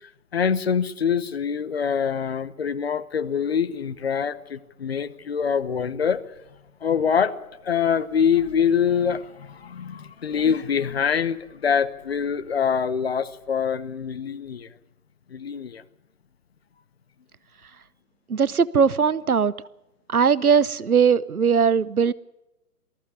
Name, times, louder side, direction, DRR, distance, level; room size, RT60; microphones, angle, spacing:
voice 1, 0.3-6.2 6.8-14.7 15.3-15.8, left 7 dB, 40° left, 13 dB, 1.0 m, -24 dB
voice 2, 18.3-19.5 20.1-22.1, right 6 dB, 70° right, 20 dB, 0.9 m, -19 dB
19.0 x 14.5 x 9.6 m, 0.95 s
figure-of-eight pair, 135°, 45 cm